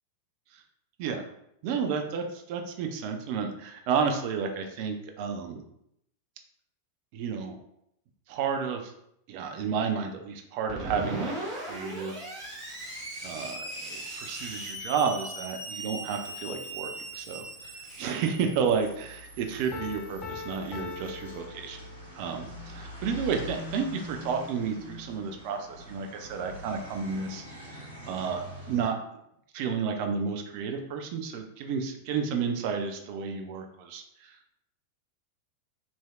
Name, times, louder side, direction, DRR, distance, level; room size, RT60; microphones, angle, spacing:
voice 1, 1.6-5.6 7.1-7.6 8.3-8.9 9.3-12.3 13.2-21.8 22.2-27.4 27.7-29.0 29.5-34.6, right 6 dB, 45° right, 4 dB, 0.4 m, -31 dB
Screech, 10.7-21.1, right 2 dB, 30° right, 0.9 m, -39 dB
sound 1, 12.4-28.9, left 1 dB, 70° right, 1.4 m, -46 dB
Piano, 19.7-22.3, left 5 dB, 25° left, 0.5 m, -41 dB
3.0 x 2.7 x 2.3 m, 0.76 s
figure-of-eight pair, 90°, 0 cm